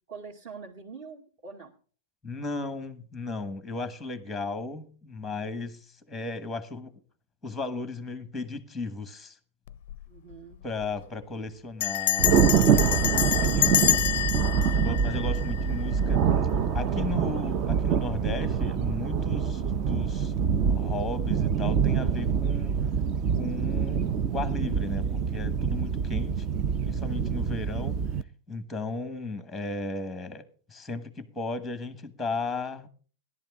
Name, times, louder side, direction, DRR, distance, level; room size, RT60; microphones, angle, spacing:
voice 1, 0.1-1.7 10.1-10.6 27.2-27.5, right 5 dB, 40° right, 2.3 m, -44 dB
voice 2, 2.2-6.9 7.4-9.4 10.6-14.1 14.7-16.2 16.7-20.3 20.7-22.8 23.3-26.4 26.8-28.0 28.5-32.9, left 3 dB, ahead, 1.2 m, -35 dB
Bell, 9.7-10.0 10.3-10.4 10.6-11.0 11.8-15.9, left 14 dB, 50° left, 0.5 m, -27 dB
Thunder, 12.2-28.2, right 7 dB, 25° right, 0.5 m, -25 dB
16.5 x 11.5 x 3.6 m
supercardioid pair, 175°, 0 cm